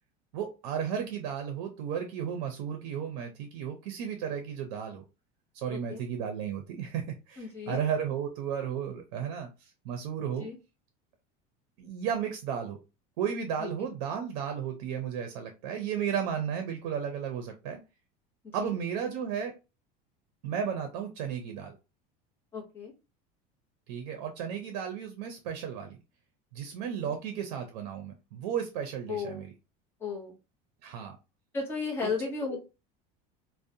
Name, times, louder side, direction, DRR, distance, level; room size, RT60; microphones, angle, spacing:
voice 1, 0.3-5.0 5.5-10.5 11.8-12.8 13.2-17.8 18.5-19.5 20.4-21.7 23.9-26.0 26.5-29.5 30.8-31.2 32.0-32.1, right 8 dB, 85° right, 5 dB, 0.5 m, -34 dB
voice 2, 7.4-7.8 10.4-10.5 13.6-13.7 18.6-18.7 22.5-22.9 27.1-27.2 29.1-29.4 30.0-30.3 31.5-32.6, left 5 dB, 10° left, -3 dB, 0.6 m, -34 dB
2.6 x 2.1 x 2.5 m, 0.29 s
cardioid pair, 175°, 20 cm